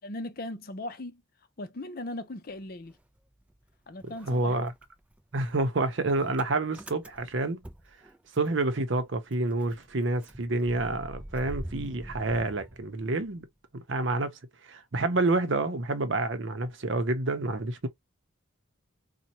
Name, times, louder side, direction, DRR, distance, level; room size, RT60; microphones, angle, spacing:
voice 1, 0.0-1.2 1.6-3.0 3.9-4.7, left 1 dB, 45° left, 0.6 m, -38 dB
Motor vehicle (road) / Engine starting, 2.5-3.7 4.0-8.7 9.0-9.1 9.3-13.4, right 1 dB, 5° right, 0.4 m, -45 dB
voice 2, 4.0-4.7 5.3-7.6 8.3-13.5 13.7-17.9, right 2 dB, 60° right, 0.7 m, -28 dB
4.2 x 2.3 x 2.8 m
head